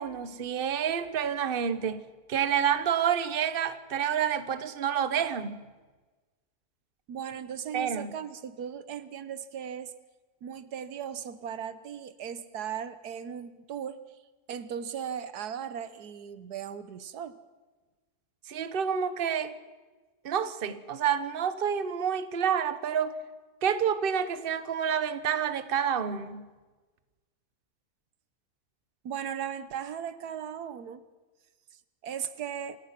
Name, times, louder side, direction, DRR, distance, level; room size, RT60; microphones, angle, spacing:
voice 1, 0.0-2.0 2.3-5.7 7.7-8.1 18.5-19.5 20.2-23.1 23.6-26.5, right 8 dB, 40° right, 12 dB, 1.1 m, -28 dB
voice 2, 7.1-9.9 10.4-14.0 14.5-17.4 29.0-31.0 32.0-32.8, right 8 dB, 80° right, 13 dB, 1.5 m, -37 dB
27.5 x 16.5 x 5.9 m, 1.3 s
omnidirectional pair, 1.6 m